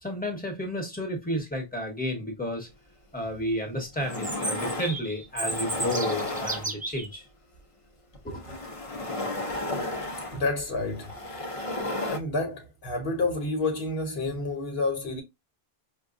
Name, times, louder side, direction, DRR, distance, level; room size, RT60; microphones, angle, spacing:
voice 1, 0.0-2.7 3.1-7.3 8.2-8.6, equal, 10° left, 0.9 m, -32 dB
sound 1, 3.3-3.4 3.8-5.0 5.4-7.0 8.1-12.2, left 2 dB, 40° left, 0.6 m, -33 dB
Chirp tweet, 4.1-7.1, right 2 dB, 15° right, 0.4 m, -33 dB
voice 2, 10.3-11.1 12.1-15.2, left 3 dB, 75° left, 1.3 m, -29 dB
4.8 x 2.3 x 2.5 m
omnidirectional pair, 1.0 m